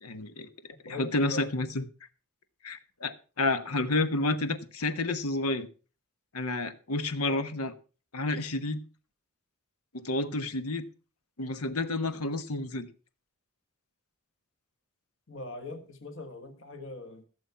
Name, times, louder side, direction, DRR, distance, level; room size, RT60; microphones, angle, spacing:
voice 1, 0.0-0.5 0.8-1.8 2.6-5.7 6.3-7.7 8.1-8.8 9.9-10.8 11.4-12.9, left 2 dB, 85° left, 1.3 m, -30 dB
voice 2, 0.9-1.5 7.3-7.5 15.3-17.2, left 2 dB, 60° left, 1.6 m, -41 dB
16.0 x 7.1 x 5.8 m
head